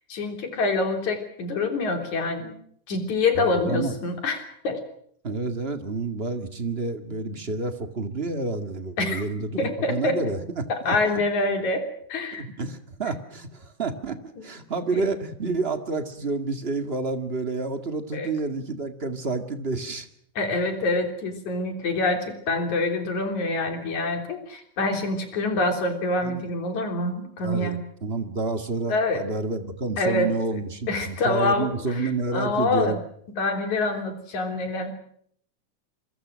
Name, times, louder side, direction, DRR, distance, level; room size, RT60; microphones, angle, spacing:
voice 1, 0.0-2.6 2.9-4.8 9.0-9.2 9.6-10.2 10.7-11.8 12.1-12.5 14.4-14.5 14.9-15.0 18.1-18.3 20.4-27.8 28.9-29.2 30.0-30.3 30.9-33.0 33.4-34.9, left 2 dB, 70° left, 5 dB, 4.7 m, -26 dB
voice 2, 3.3-3.9 5.2-11.0 12.4-14.2 14.4-20.1 26.2-26.5 27.4-33.0, right 3 dB, 25° right, 7 dB, 1.7 m, -29 dB
27.0 x 24.0 x 6.4 m, 0.66 s
omnidirectional pair, 3.5 m